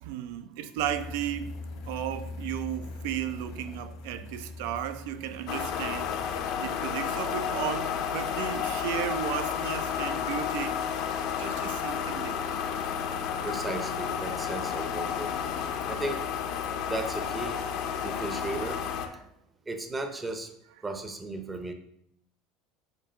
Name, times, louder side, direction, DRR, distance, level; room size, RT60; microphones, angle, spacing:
voice 1, 0.0-10.8 11.4-12.6 17.9-18.1, right 10 dB, 75° right, 0.5 m, -35 dB
sound 1, 0.8-6.5, left 3 dB, 70° left, 1.2 m, -41 dB
sound 2, 5.5-19.1, left 8 dB, 50° left, 0.6 m, -31 dB
voice 2, 13.4-15.3 15.9-16.2 16.9-17.6 18.0-18.8 19.7-20.5 20.8-21.7, right 2 dB, 10° right, 0.6 m, -35 dB
7.3 x 2.6 x 5.6 m
cardioid pair, 170°, 0 cm